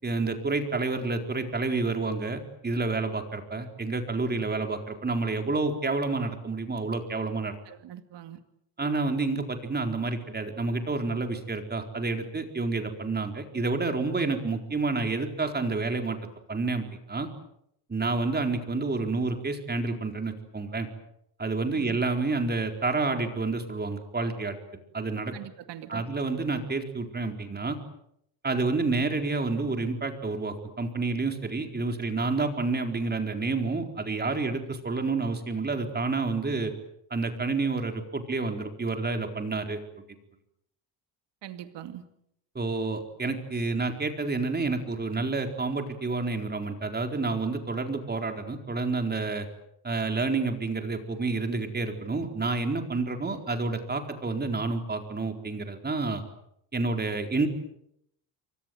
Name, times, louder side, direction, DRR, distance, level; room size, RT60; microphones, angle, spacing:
voice 1, 0.0-7.6 8.8-16.2 16.5-17.3 17.9-20.9 21.4-24.6 24.9-25.3 25.9-27.8 28.4-36.7 37.1-39.8 42.5-49.5 49.8-56.2 56.7-57.5, right 3 dB, 20° right, 5 dB, 4.3 m, -29 dB
voice 2, 7.6-8.4 21.7-22.0 25.3-26.0 41.4-42.0, right 11 dB, 70° right, 8 dB, 2.4 m, -42 dB
28.5 x 24.0 x 7.9 m, 0.76 s
cardioid pair, 125°, 44 cm